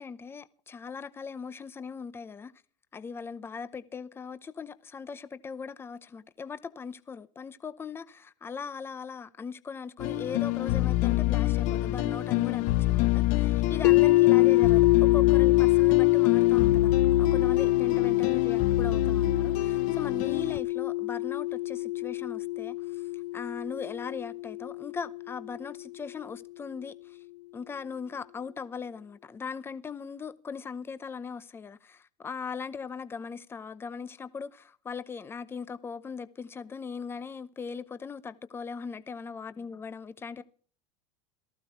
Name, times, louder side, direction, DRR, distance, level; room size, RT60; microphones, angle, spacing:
voice 1, 0.0-2.5 2.9-27.2 27.5-40.4, left 5 dB, 10° left, 0.8 m, -39 dB
sound 1, 10.0-20.6, left 14 dB, 40° left, 0.8 m, -28 dB
sound 2, 13.8-25.8, left 20 dB, 70° left, 0.7 m, -24 dB
18.5 x 14.5 x 4.5 m
supercardioid pair, 175°, 21 cm